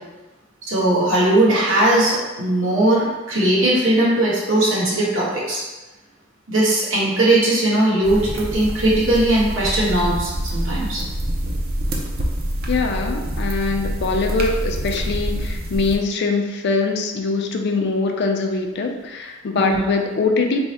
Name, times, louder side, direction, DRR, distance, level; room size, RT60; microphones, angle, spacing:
voice 1, 0.7-5.6 6.5-11.0 19.5-19.8, right 1 dB, 70° right, -7 dB, 1.2 m, -19 dB
sound 1, 8.0-16.0, right 1 dB, 50° right, 0.5 m, -26 dB
voice 2, 12.7-20.6, left 3 dB, 55° left, 3 dB, 0.4 m, -22 dB
3.5 x 2.0 x 4.2 m, 1.2 s
head